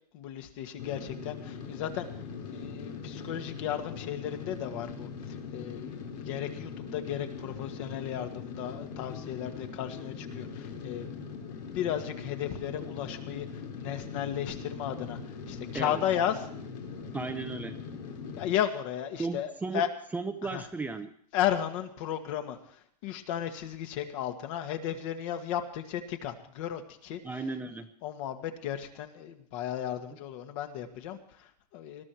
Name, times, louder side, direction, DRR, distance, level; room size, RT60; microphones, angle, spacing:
voice 1, 0.1-2.2 2.5-11.1 11.7-16.5 18.4-19.9 20.4-20.7 21.3-27.5 28.0-32.0, left 10 dB, 50° left, 6 dB, 1.9 m, -34 dB
sound 1, 0.8-18.5, left 5 dB, 85° left, 3.8 m, -41 dB
voice 2, 17.1-17.8 19.2-19.8 20.1-21.1 27.2-27.9, right 3 dB, 10° right, 6 dB, 0.7 m, -35 dB
20.5 x 13.0 x 4.6 m, 0.63 s
hypercardioid pair, 140°, 21 cm